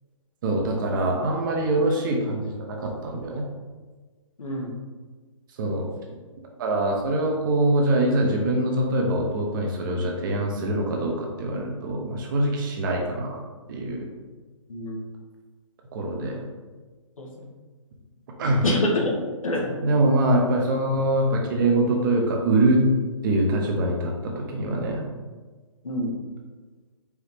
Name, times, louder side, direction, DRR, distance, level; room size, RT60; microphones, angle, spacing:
voice 1, 0.4-3.4 5.6-5.9 6.6-13.4 13.7-14.1 15.9-16.5 18.4-18.6 19.8-22.8 23.2-25.0, right 1 dB, 40° right, 1 dB, 0.8 m, -24 dB
voice 2, 4.4-4.7 14.7-15.0 17.2-17.5 18.6-19.7 25.8-26.2, left 1 dB, 90° left, 0 dB, 1.1 m, -26 dB
4.7 x 2.8 x 3.4 m, 1.3 s
hypercardioid pair, 150°, 17 cm